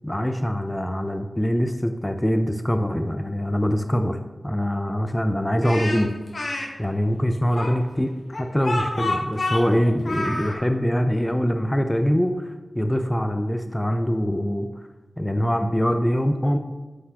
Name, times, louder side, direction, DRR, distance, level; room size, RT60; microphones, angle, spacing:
voice 1, 0.0-6.1 6.8-8.1 8.4-14.7 15.2-16.6, equal, 10° left, 6 dB, 0.5 m, -23 dB
Speech, 5.6-6.7 7.6-10.6, left 2 dB, 60° left, 1.1 m, -28 dB
9.4 x 4.1 x 2.9 m, 1.2 s
cardioid pair, 55°, 0 cm